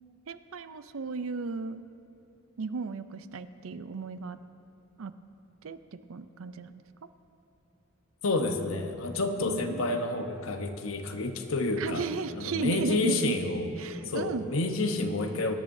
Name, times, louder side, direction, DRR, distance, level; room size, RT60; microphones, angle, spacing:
voice 1, 0.3-1.8 2.6-4.4 5.0-5.1 5.6-5.8 6.1-6.8 9.3-10.0 11.8-13.4 13.8-14.5, right 4 dB, 75° right, 12 dB, 0.5 m, -35 dB
voice 2, 8.2-12.1 12.3-13.7 14.0-15.5, left 2 dB, 75° left, 5 dB, 1.0 m, -29 dB
23.5 x 10.5 x 2.7 m, 2.7 s
head